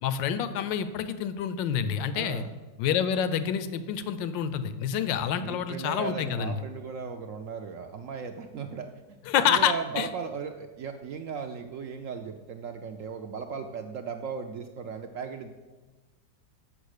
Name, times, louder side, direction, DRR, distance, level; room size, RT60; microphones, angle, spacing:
voice 1, 0.0-2.4 2.8-6.5 9.3-10.1, left 8 dB, 85° left, 12 dB, 1.3 m, -27 dB
voice 2, 2.1-2.5 5.4-15.5, right 6 dB, 80° right, 5 dB, 0.7 m, -37 dB
7.9 x 6.1 x 6.5 m, 1.3 s
omnidirectional pair, 1.9 m